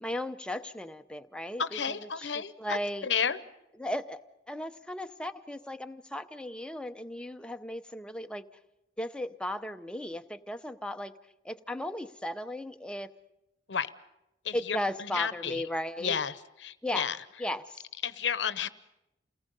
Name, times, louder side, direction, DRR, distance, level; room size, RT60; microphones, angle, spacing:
voice 1, 0.0-3.1 3.8-4.2 4.5-8.6 9.0-11.1 11.4-13.1 14.5-16.2 16.8-17.1 17.4-17.8, left 1 dB, 5° left, 7 dB, 0.7 m, -36 dB
voice 2, 1.6-3.4 13.7-13.9 14.4-15.6 16.0-16.3 16.6-17.2 18.0-18.7, left 7 dB, 75° left, 14 dB, 0.9 m, -32 dB
29.5 x 19.0 x 5.4 m, 0.88 s
head